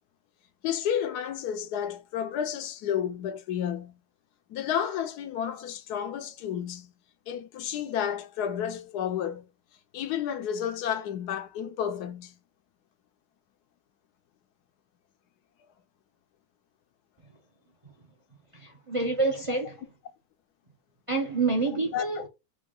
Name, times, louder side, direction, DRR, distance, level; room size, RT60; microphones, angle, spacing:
voice 1, 0.6-3.9 4.5-6.9 7.3-9.4 9.9-12.3 21.9-22.2, left 9 dB, 80° left, 1.2 m, -31 dB
voice 2, 18.5-19.8 21.1-22.3, right 3 dB, 30° right, 0.6 m, -27 dB
3.9 x 2.9 x 3.7 m
omnidirectional pair, 1.7 m